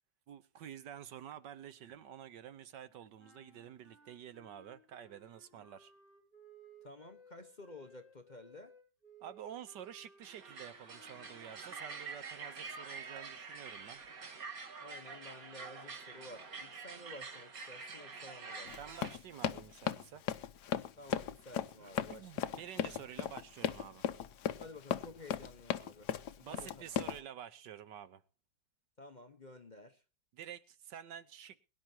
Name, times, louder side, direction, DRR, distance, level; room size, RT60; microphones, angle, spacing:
voice 1, 0.3-5.9 9.2-14.0 18.8-20.2 21.8-24.1 26.4-28.2 30.3-31.6, right 9 dB, 70° right, 1.5 m, -49 dB
sound 1, 3.2-12.8, right 2 dB, 30° right, 6.8 m, -61 dB
voice 2, 6.8-8.7 14.8-18.8 21.0-22.6 24.6-26.8 29.0-30.0, left 2 dB, 30° left, 1.0 m, -53 dB
sound 2, 10.2-19.2, right 4 dB, 50° right, 2.0 m, -47 dB
Run, 18.7-27.2, left 10 dB, 65° left, 1.3 m, -36 dB
22.5 x 11.0 x 2.8 m
omnidirectional pair, 2.0 m